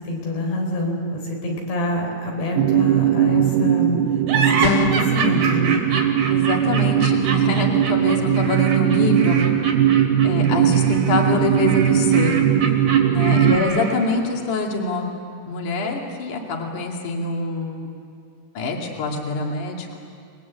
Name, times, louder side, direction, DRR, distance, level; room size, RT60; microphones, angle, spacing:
voice 1, 0.0-5.8 13.3-13.8, left 1 dB, 90° left, 1 dB, 6.5 m, -26 dB
sound 1, 2.6-13.6, right 10 dB, 75° right, 2.4 m, -19 dB
sound 2, 4.3-14.1, right 4 dB, 60° right, 4.3 m, -27 dB
sound 3, 4.6-5.2, left 13 dB, 70° left, 2.7 m, -23 dB
voice 2, 6.3-9.4 10.2-12.3 13.1-15.1 15.5-17.9 18.6-20.0, left 2 dB, 55° left, 0 dB, 3.8 m, -24 dB
29.0 x 21.5 x 8.4 m, 2.3 s
omnidirectional pair, 4.6 m